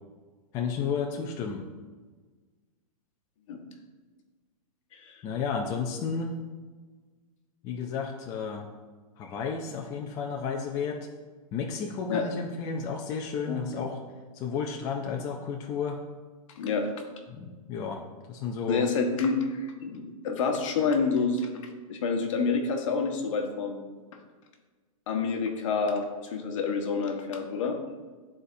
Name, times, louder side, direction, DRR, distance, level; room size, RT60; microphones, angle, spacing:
voice 1, 0.5-1.6 5.2-6.4 7.6-8.7 9.2-11.0 11.5-14.0 14.3-16.0 17.3-18.0 18.3-18.9, left 5 dB, 15° left, 1 dB, 0.4 m, -32 dB
voice 2, 4.9-5.2 12.1-12.2 13.5-13.6 16.6-16.9 18.7-23.8 25.1-27.8, left 4 dB, 55° left, 3 dB, 1.2 m, -28 dB
11.0 x 4.2 x 2.6 m, 1.4 s
hypercardioid pair, 155°, 19 cm